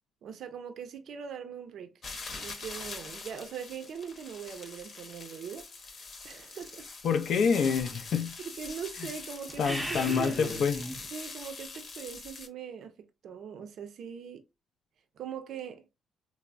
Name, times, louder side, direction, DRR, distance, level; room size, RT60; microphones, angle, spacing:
voice 1, 0.2-1.9 2.3-6.9 8.6-10.4 11.1-12.9 13.2-14.4 15.2-15.9, right 7 dB, 70° right, 0.5 m, -41 dB
sound 1, 2.0-12.5, left 4 dB, 50° left, 0.8 m, -43 dB
voice 2, 7.0-8.4 9.0-9.1 9.6-10.8, left 6 dB, 70° left, 0.4 m, -27 dB
sound 2, 9.5-11.1, right 1 dB, 5° right, 0.6 m, -37 dB
3.3 x 2.0 x 2.4 m
cardioid pair, 90°, 0 cm